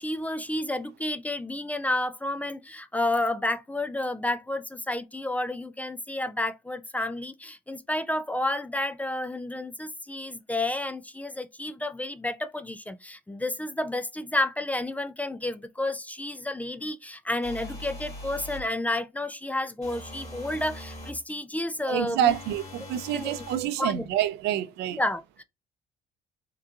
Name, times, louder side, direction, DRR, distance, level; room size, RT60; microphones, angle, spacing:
voice 1, 0.0-22.3 23.1-23.4 23.8-24.0 25.0-25.4, left 1 dB, 10° left, 0.4 m, -31 dB
sound 1, 17.4-18.7 19.8-21.2 22.2-23.7, left 1 dB, 40° left, 2.3 m, -41 dB
voice 2, 21.9-25.0, right 11 dB, 80° right, 0.5 m, -27 dB
3.7 x 3.5 x 2.8 m
cardioid pair, 110°, 17 cm